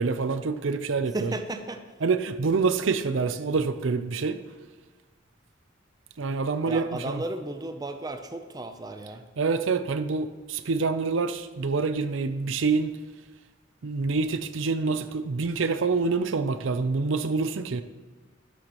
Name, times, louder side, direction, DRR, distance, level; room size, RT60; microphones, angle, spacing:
voice 1, 0.0-1.3 2.0-4.4 6.2-7.2 9.4-12.9 13.8-17.8, right 4 dB, 75° right, 11 dB, 0.5 m, -26 dB
voice 2, 1.1-1.8 6.7-9.2, right 2 dB, 20° right, 7 dB, 0.5 m, -34 dB
11.5 x 11.5 x 3.0 m, 1.3 s
head